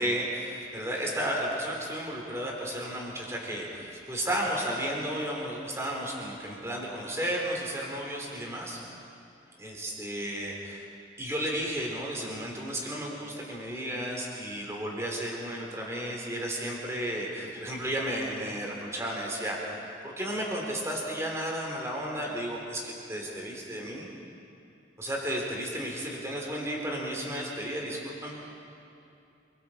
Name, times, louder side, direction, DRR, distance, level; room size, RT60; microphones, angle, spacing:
voice 1, 0.0-8.8 9.6-10.9 11.2-19.6 20.0-24.1 25.0-28.4, right 1 dB, 15° right, -2 dB, 3.6 m, -33 dB
28.5 x 22.5 x 4.5 m, 2.6 s
head